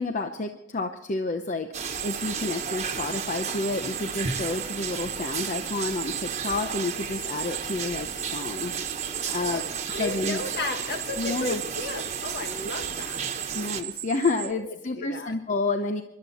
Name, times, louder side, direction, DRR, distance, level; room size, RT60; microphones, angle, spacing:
voice 1, 0.0-8.8 9.3-10.4 11.2-11.6 13.5-16.0, left 3 dB, 45° left, 7 dB, 0.8 m, -30 dB
sound 1, 1.7-13.8, right 6 dB, 40° right, 1.3 m, -34 dB
sound 2, 1.9-14.5, right 13 dB, 60° right, 0.7 m, -37 dB
voice 2, 9.2-13.3 14.6-15.3, left 2 dB, 60° left, 6 dB, 1.8 m, -34 dB
25.5 x 12.5 x 4.2 m, 0.85 s
head